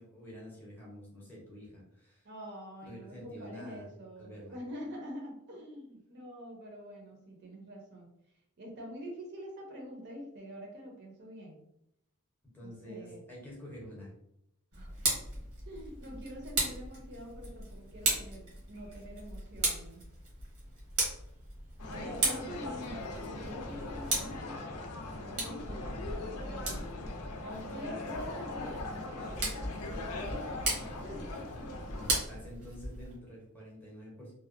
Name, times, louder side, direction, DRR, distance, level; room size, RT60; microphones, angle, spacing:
voice 1, 0.0-2.3 2.8-3.9 4.2-4.6 12.4-14.1 25.8-25.9 31.9-34.3, equal, 10° left, -4 dB, 0.6 m, -48 dB
voice 2, 2.2-8.1 8.6-11.7 12.6-13.2 14.7-15.2 15.6-20.0 21.9-24.6 25.2-30.3 30.8-31.7, equal, 50° right, 0 dB, 0.6 m, -46 dB
Tick, 14.7-33.2, right 2 dB, 90° right, 1.0 m, -37 dB
sound 1, 21.8-32.1, left 2 dB, 85° left, 0.5 m, -41 dB
2.7 x 2.1 x 2.4 m, 0.80 s
head